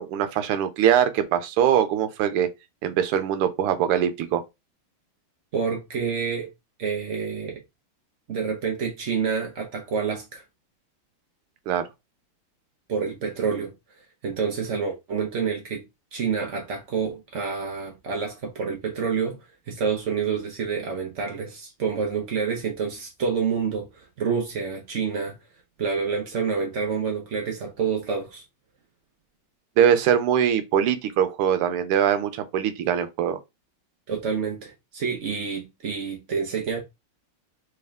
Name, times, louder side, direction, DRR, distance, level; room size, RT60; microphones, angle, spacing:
voice 1, 0.0-2.5 2.8-4.4 11.7-11.8 29.8-33.4, right 9 dB, 90° right, 1.6 m, -22 dB
voice 2, 5.5-6.5 6.8-7.6 8.3-10.4 12.9-13.7 14.2-15.8 16.1-19.4 19.7-25.4 25.8-28.4 34.1-36.8, right 6 dB, 65° right, 0.7 m, -28 dB
3.5 x 3.4 x 3.4 m
omnidirectional pair, 2.4 m